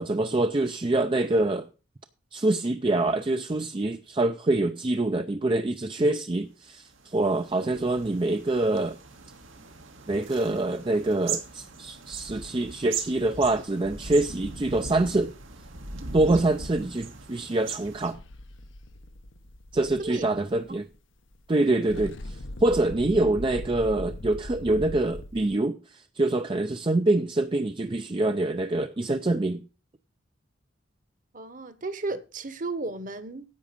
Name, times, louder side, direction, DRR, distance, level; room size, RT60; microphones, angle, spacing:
voice 1, 0.0-1.7 2.3-9.0 10.1-15.3 16.1-18.2 19.7-20.9 21.5-29.6, right 2 dB, 25° right, 0.5 m, -25 dB
sound 1, 6.9-18.1, right 5 dB, 90° right, 2.1 m, -39 dB
sound 2, 18.1-21.0 21.3-21.4 21.7-25.5, left 1 dB, 80° left, 1.0 m, -40 dB
voice 2, 31.3-33.4, right 3 dB, 45° right, 1.2 m, -34 dB
10.5 x 8.4 x 5.2 m
head